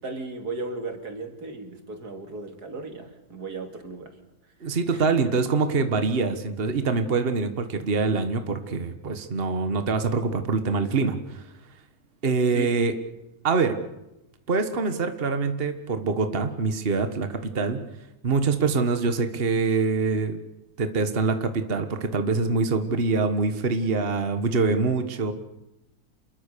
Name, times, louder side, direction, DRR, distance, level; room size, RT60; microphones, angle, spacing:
voice 1, 0.0-4.1 4.9-5.1 12.5-12.7, right 3 dB, 90° right, 6 dB, 3.3 m, -36 dB
voice 2, 4.6-11.4 12.2-13.0 13.4-13.8 14.5-17.8 18.2-20.4 20.8-25.3, right 4 dB, 40° right, 9 dB, 1.7 m, -24 dB
27.5 x 21.5 x 6.9 m, 0.91 s
omnidirectional pair, 1.6 m